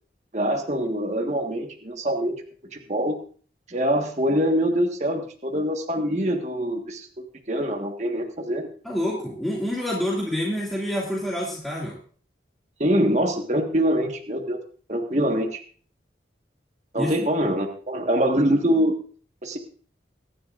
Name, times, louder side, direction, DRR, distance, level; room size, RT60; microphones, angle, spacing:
voice 1, 0.3-2.4 2.7-3.2 3.7-8.7 12.8-14.6 14.9-15.6 16.9-19.0 19.4-19.6, equal, 40° right, 3 dB, 1.5 m, -24 dB
voice 2, 8.8-12.0 17.0-17.3, left 1 dB, ahead, -5 dB, 2.2 m, -27 dB
23.5 x 11.0 x 2.5 m, 0.43 s
head